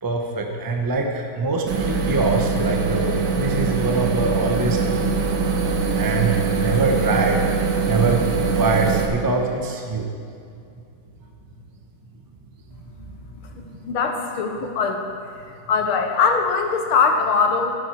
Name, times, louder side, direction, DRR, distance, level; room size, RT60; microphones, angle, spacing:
voice 1, 0.0-5.2 6.0-7.4 7.8-10.1, right 3 dB, 15° right, 2 dB, 0.7 m, -23 dB
sound 1, 1.7-9.1, right 4 dB, 70° right, 2.0 m, -22 dB
voice 2, 13.6-15.1 15.7-17.7, left 5 dB, 90° left, 4 dB, 2.1 m, -21 dB
13.5 x 11.5 x 4.8 m, 2.4 s
omnidirectional pair, 2.3 m